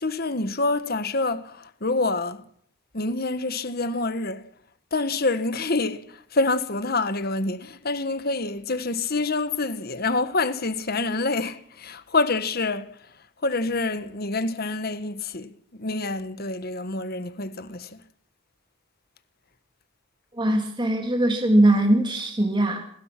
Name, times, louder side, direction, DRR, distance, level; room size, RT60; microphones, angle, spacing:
voice 1, 0.0-1.4 1.8-2.4 2.9-4.4 4.9-6.0 6.3-12.8 13.4-15.5 15.8-17.9, left 3 dB, 50° left, 1.5 m, -26 dB
voice 2, 20.4-22.8, right 1 dB, 25° right, 2.8 m, -21 dB
27.5 x 20.5 x 6.0 m
head